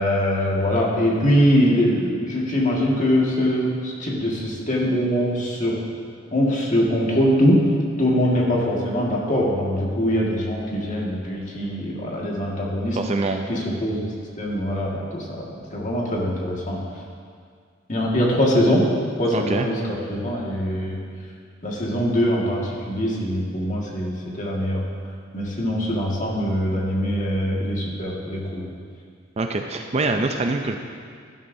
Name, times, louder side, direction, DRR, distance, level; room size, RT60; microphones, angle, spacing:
voice 1, 0.0-5.8 6.3-7.6 8.0-13.0 13.5-14.0 14.4-16.8 17.9-18.8 19.2-21.0 21.6-24.8 25.3-28.6, equal, 40° left, -3 dB, 1.8 m, -22 dB
voice 2, 13.0-13.5 19.3-19.7 29.4-30.8, right 3 dB, 30° right, 5 dB, 0.5 m, -24 dB
12.5 x 11.5 x 2.7 m, 2.1 s
head